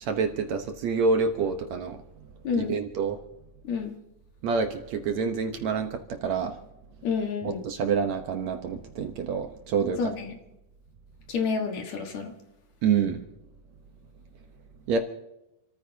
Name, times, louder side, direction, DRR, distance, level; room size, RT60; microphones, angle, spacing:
voice 1, 0.0-2.0 2.6-3.2 4.4-6.6 7.4-10.0 12.8-13.2 14.9-15.0, right 5 dB, 65° right, 5 dB, 2.0 m, -27 dB
voice 2, 2.4-2.8 3.6-4.0 7.0-7.7 10.0-10.4 11.3-12.3, left 5 dB, 60° left, 3 dB, 2.7 m, -29 dB
29.5 x 14.0 x 2.8 m, 0.90 s
omnidirectional pair, 3.9 m